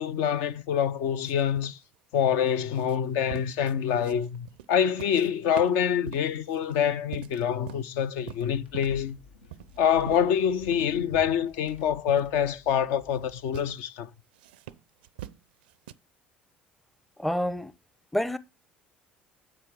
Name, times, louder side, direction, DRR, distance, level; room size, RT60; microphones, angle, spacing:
voice 1, 0.0-1.8 2.1-9.2 9.8-14.1, left 8 dB, 60° left, 0.6 m, -26 dB
sound 1, 1.2-5.3 5.6-8.0 8.3-9.1 9.5-11.0 11.3-11.4 12.1-12.3 12.9-13.2 13.5-13.8 14.3-15.9, right 13 dB, 70° right, 0.5 m, -44 dB
sound 2, 8.4-13.8, left 3 dB, 80° left, 1.3 m, -49 dB
voice 2, 17.2-17.7 18.1-18.4, left 1 dB, 5° left, 0.6 m, -27 dB
7.8 x 7.5 x 4.5 m
figure-of-eight pair, 60°, 5 cm